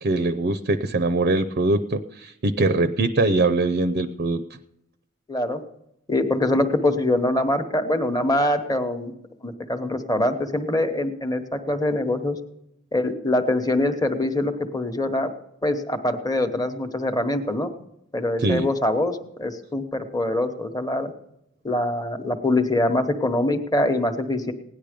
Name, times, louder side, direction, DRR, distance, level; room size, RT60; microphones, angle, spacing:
voice 1, 0.0-4.4 18.4-18.7, right 2 dB, 45° right, 11 dB, 0.5 m, -22 dB
voice 2, 5.3-5.6 6.1-9.1 9.4-12.4 12.9-15.3 15.6-17.7 18.1-21.1 21.6-24.5, left 1 dB, 20° left, 7 dB, 1.1 m, -24 dB
17.0 x 10.5 x 5.1 m, 0.81 s
head